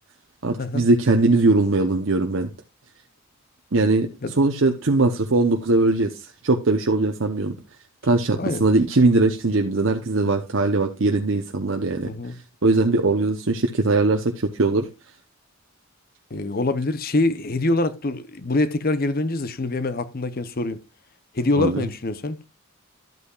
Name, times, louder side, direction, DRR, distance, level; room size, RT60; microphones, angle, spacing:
voice 1, 0.4-2.5 3.7-4.1 4.4-7.5 8.0-12.1 12.6-14.9 21.6-21.8, right 2 dB, 65° right, 0.8 m, -20 dB
voice 2, 12.0-12.4 16.3-20.8 21.3-22.4, left 2 dB, 45° left, 0.8 m, -24 dB
12.0 x 8.3 x 2.4 m
head